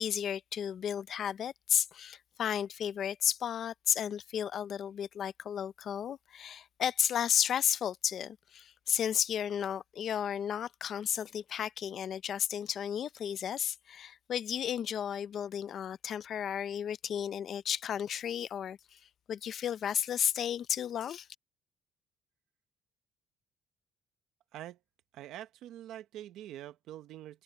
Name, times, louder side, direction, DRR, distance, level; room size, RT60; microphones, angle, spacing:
voice 1, 0.0-19.0 19.3-21.3, left 9 dB, 50° left, 0.6 m, -33 dB
voice 2, 25.1-27.4, right 12 dB, 75° right, 0.9 m, -45 dB
cardioid pair, 150°, 0 cm